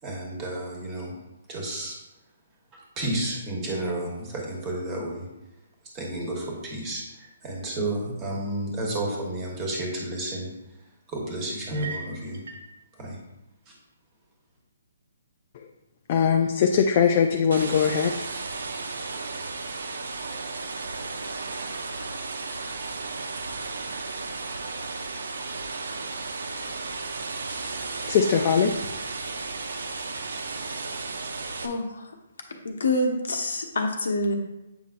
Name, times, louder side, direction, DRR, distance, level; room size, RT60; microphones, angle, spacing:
voice 1, 0.0-1.1 1.5-1.9 3.0-5.3 5.9-10.5 11.1-12.4 13.0-13.2 13.7-13.8, right 1 dB, 15° right, -2 dB, 1.2 m, -31 dB
sound 1, 11.6-12.7, right 4 dB, 60° right, 1.1 m, -39 dB
voice 2, 16.1-18.1 28.0-28.7, left 7 dB, 30° left, 3 dB, 0.3 m, -21 dB
sound 2, 17.5-31.7, right 3 dB, 85° right, 0.7 m, -34 dB
voice 3, 31.6-32.1 32.6-34.3, left 2 dB, 80° left, 2 dB, 1.1 m, -26 dB
7.9 x 5.3 x 2.5 m, 0.97 s
hypercardioid pair, 170°, 0 cm